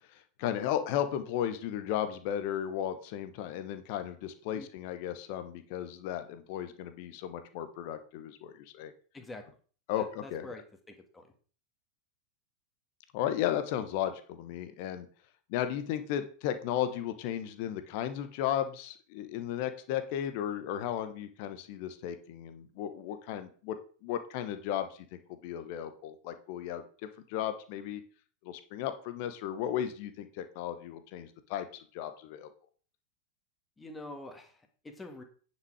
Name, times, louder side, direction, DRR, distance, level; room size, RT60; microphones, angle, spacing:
voice 1, 0.1-8.9 9.9-10.5 13.1-15.1 15.5-23.8 24.0-28.0 28.4-32.5, left 10 dB, 45° left, 10 dB, 1.2 m, -35 dB
voice 2, 10.0-10.6 10.9-11.3 33.8-35.2, left 2 dB, 10° left, 5 dB, 2.0 m, -46 dB
9.6 x 6.4 x 4.9 m, 0.41 s
figure-of-eight pair, 90°, 0 cm